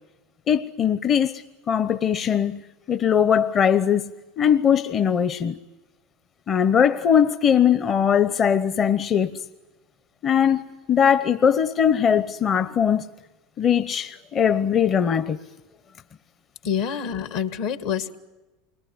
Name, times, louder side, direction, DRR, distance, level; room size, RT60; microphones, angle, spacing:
voice 1, 0.5-1.4 1.7-2.6 2.9-4.1 4.4-5.5 6.5-9.3 10.2-10.6 10.9-13.0 13.6-15.4, left 8 dB, 35° left, 0.8 m, -20 dB
voice 2, 16.6-18.1, left 8 dB, 70° left, 1.9 m, -27 dB
28.5 x 21.5 x 9.5 m
hypercardioid pair, 95°, 0 cm